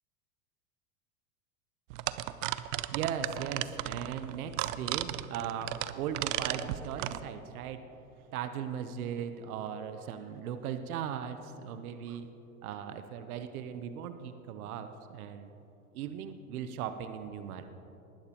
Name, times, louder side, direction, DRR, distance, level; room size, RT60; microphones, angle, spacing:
sound 1, 1.9-7.2, right 15 dB, 60° right, 0.6 m, -35 dB
voice 1, 2.8-7.8 8.3-12.3 12.6-15.5 15.9-17.7, right 8 dB, 75° right, 9 dB, 0.9 m, -38 dB
19.5 x 11.5 x 3.0 m, 2.9 s
hypercardioid pair, 115°, 44 cm